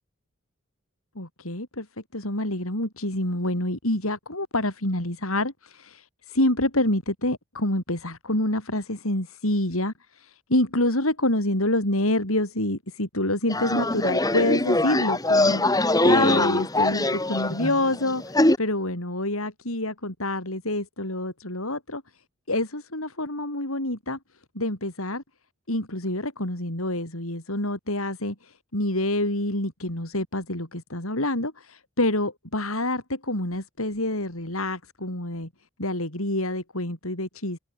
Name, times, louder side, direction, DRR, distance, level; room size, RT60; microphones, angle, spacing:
voice 1, 1.2-1.9 2.1-22.0 22.5-24.2 24.5-25.2 25.7-35.5 35.8-37.6, left 1 dB, 75° left, 7.7 m, -27 dB
sound 1, 13.5-18.6, left 2 dB, 15° left, 3.3 m, -22 dB
head